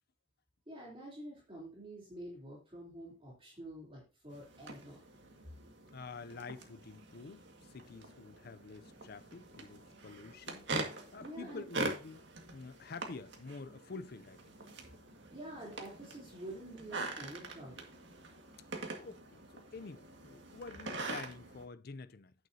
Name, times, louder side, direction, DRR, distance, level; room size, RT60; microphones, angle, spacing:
voice 1, 0.7-5.0 11.2-11.6 15.3-17.9, right 1 dB, 30° right, 3.3 m, -48 dB
sound 1, 4.3-21.7, right 2 dB, 60° right, 1.8 m, -44 dB
voice 2, 5.9-12.3 12.5-14.4 19.0-22.3, left 4 dB, 50° left, 0.5 m, -48 dB
10.5 x 9.1 x 2.8 m
head